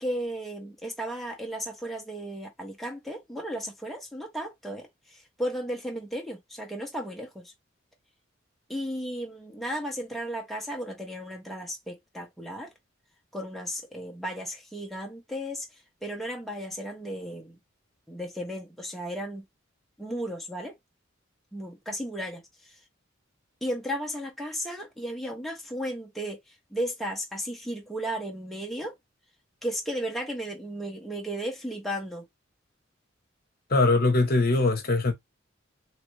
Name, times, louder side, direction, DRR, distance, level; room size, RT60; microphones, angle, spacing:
voice 1, 0.0-7.5 8.7-12.7 13.3-15.7 16.0-17.6 18.1-19.4 20.0-20.7 21.5-22.4 23.6-29.0 29.6-32.2, equal, ahead, 0.7 m, -34 dB
voice 2, 33.7-35.1, left 2 dB, 50° left, 0.8 m, -22 dB
3.1 x 2.4 x 3.0 m
head